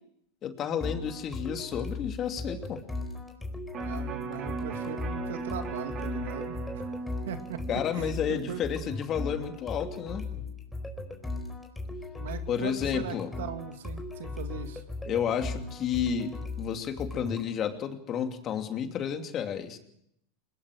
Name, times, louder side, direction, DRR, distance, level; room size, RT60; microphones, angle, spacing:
voice 1, 0.4-2.8 7.7-10.3 12.5-13.3 15.1-19.8, left 8 dB, 40° left, 5 dB, 2.8 m, -31 dB
sound 1, 0.8-17.5, left 2 dB, 5° left, 4.3 m, -38 dB
Electric guitar, 3.7-9.9 10.3-10.4, right 4 dB, 35° right, 4.2 m, -39 dB
voice 2, 3.7-6.9 7.3-7.6 7.9-8.6 12.2-14.8, right 9 dB, 75° right, 7 dB, 2.3 m, -40 dB
21.5 x 21.0 x 6.3 m, 0.74 s
hypercardioid pair, 100°, 0 cm